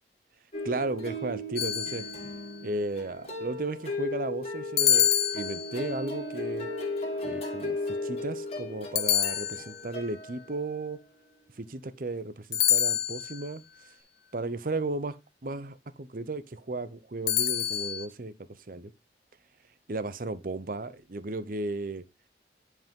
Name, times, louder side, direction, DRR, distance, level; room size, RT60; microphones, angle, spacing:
sound 1, 0.5-10.6, left 2 dB, 35° left, 2.3 m, -36 dB
voice 1, 0.6-2.0 2.6-6.7 7.2-11.0 11.6-13.6 14.3-15.2 15.4-18.3 18.7-18.9 19.9-22.0, right 2 dB, 50° right, 0.7 m, -34 dB
sound 2, 1.6-2.5 4.8-6.0 9.0-10.0 12.5-13.5 17.3-18.1, left 11 dB, 65° left, 0.6 m, -27 dB
10.5 x 4.8 x 3.6 m
head